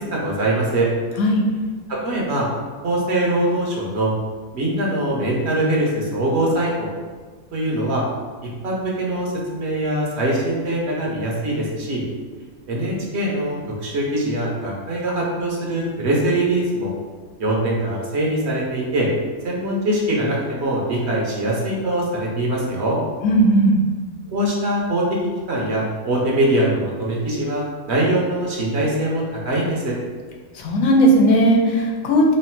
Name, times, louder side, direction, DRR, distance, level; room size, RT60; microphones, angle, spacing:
voice 1, 0.1-0.9 1.9-2.5 2.8-4.1 4.5-6.9 7.5-8.0 8.6-12.0 12.7-16.9 17.4-19.1 19.4-22.9 24.3-25.2 25.5-29.9, right 1 dB, 55° right, -3 dB, 1.0 m, -22 dB
voice 2, 23.2-23.8 30.6-32.4, right 1 dB, 90° left, 0 dB, 1.1 m, -16 dB
3.1 x 2.6 x 4.3 m, 1.4 s
omnidirectional pair, 1.4 m